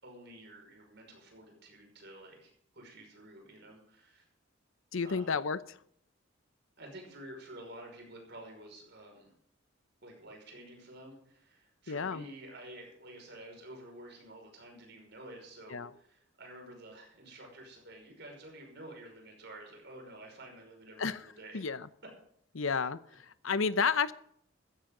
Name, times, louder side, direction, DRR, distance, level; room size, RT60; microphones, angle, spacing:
voice 1, 0.0-4.3 5.0-5.4 6.8-9.3 10.0-21.6, right 1 dB, 60° right, 1 dB, 5.6 m, -50 dB
voice 2, 4.9-5.8 11.9-12.2 15.7-15.9 21.0-21.2 21.5-21.9 22.5-24.1, left 5 dB, 85° left, 15 dB, 0.8 m, -31 dB
15.0 x 15.0 x 3.9 m, 0.68 s
head